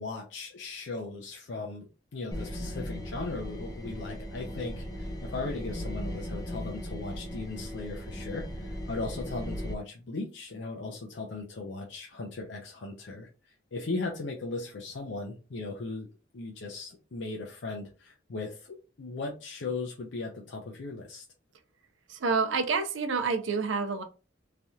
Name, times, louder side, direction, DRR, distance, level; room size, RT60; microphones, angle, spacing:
voice 1, 0.0-13.3 13.7-16.1 16.3-21.2, left 3 dB, 65° left, 0.5 m, -37 dB
sound 1, 2.3-9.7, equal, 20° left, 0.6 m, -37 dB
voice 2, 22.1-24.0, right 4 dB, 80° right, 0.5 m, -28 dB
3.3 x 2.7 x 2.3 m
head